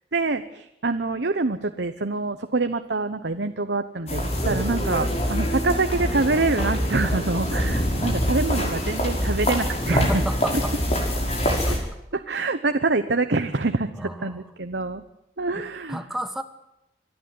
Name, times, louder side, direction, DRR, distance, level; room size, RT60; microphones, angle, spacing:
voice 1, 0.1-10.2 12.1-15.0 15.4-16.0, right 3 dB, 75° right, 8 dB, 1.1 m, -25 dB
sound 1, 4.1-11.8, equal, 35° left, 5.7 m, -25 dB
voice 2, 9.9-10.8 11.6-11.8 13.9-14.4 15.5-15.6 15.9-16.4, equal, ahead, 8 dB, 1.2 m, -31 dB
26.5 x 11.5 x 9.7 m, 0.87 s
head